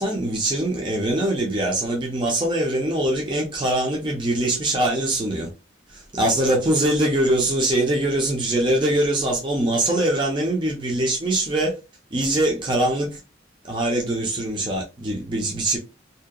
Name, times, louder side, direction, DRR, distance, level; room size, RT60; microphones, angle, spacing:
voice 1, 0.0-5.5 5.9-11.7 12.1-13.2 13.6-15.8, right 1 dB, 25° right, 0.5 m, -23 dB
2.7 x 2.1 x 2.3 m
head